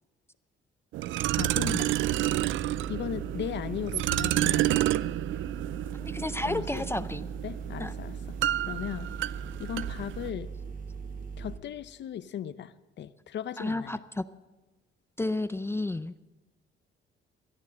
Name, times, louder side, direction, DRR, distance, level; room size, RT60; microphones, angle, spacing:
sound 1, 0.9-10.3, right 14 dB, 80° right, 0.4 m, -30 dB
sound 2, 1.2-11.6, right 5 dB, 45° right, 1.0 m, -39 dB
voice 1, 1.3-1.9 2.9-4.8 6.5-6.9 7.4-8.2 8.7-9.1 9.6-10.5 11.4-14.0, left 10 dB, 65° left, 15 dB, 0.8 m, -37 dB
voice 2, 6.0-7.3 7.8-7.9 13.6-14.3 15.2-16.3, left 2 dB, 10° left, 13 dB, 0.5 m, -32 dB
17.5 x 12.0 x 6.4 m, 1.1 s
cardioid pair, 90°, 20 cm